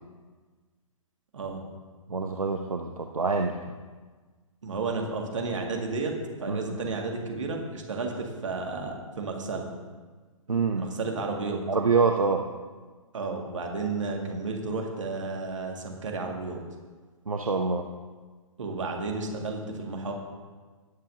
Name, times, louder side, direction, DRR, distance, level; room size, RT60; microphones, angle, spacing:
voice 1, 2.1-3.5 6.5-6.8 10.5-10.9 11.7-12.4 17.3-17.9, right 4 dB, 80° right, 4 dB, 0.7 m, -26 dB
voice 2, 4.6-6.1 6.4-9.7 10.8-11.6 13.1-16.6 18.6-20.1, right 3 dB, 65° right, 1 dB, 2.0 m, -32 dB
18.0 x 7.5 x 2.8 m, 1.4 s
figure-of-eight pair, 120°, 18 cm